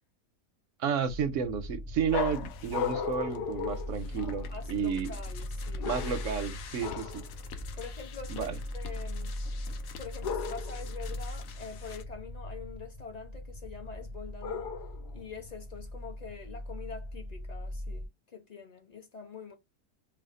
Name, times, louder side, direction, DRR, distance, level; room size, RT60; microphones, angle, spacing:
voice 1, 0.8-5.1 5.8-7.2 8.3-8.6, right 6 dB, 65° right, 0.8 m, -32 dB
sound 1, 1.1-18.1, left 1 dB, 5° right, 0.7 m, -40 dB
sound 2, 2.1-4.6 5.8-6.4 6.8-7.3 10.2-10.9 14.4-15.2, left 7 dB, 85° left, 1.2 m, -36 dB
sound 3, 2.1-12.0, left 7 dB, 70° left, 1.0 m, -48 dB
voice 2, 4.2-5.9 7.8-9.3 10.0-14.7 15.1-19.5, left 5 dB, 35° left, 0.8 m, -45 dB
3.4 x 2.3 x 3.6 m
omnidirectional pair, 1.7 m